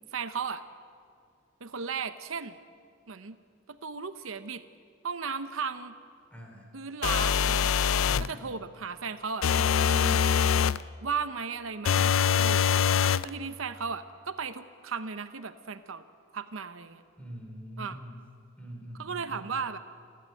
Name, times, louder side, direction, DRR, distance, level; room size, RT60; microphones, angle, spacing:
voice 1, 0.1-0.6 1.6-2.6 3.1-3.4 3.7-4.6 5.0-5.9 6.7-7.8 8.2-10.2 11.0-12.7 13.2-16.0 16.3-17.0 17.8-18.0 19.0-19.8, right 5 dB, 85° right, 11 dB, 0.8 m, -36 dB
voice 2, 6.3-6.6 8.0-8.6 17.2-18.2 18.6-19.5, right 1 dB, 5° left, 1 dB, 3.9 m, -44 dB
sound 1, 7.0-8.3 9.4-10.8 11.9-13.3, left 7 dB, 85° left, 0.4 m, -24 dB
29.5 x 12.0 x 9.5 m, 2.2 s
head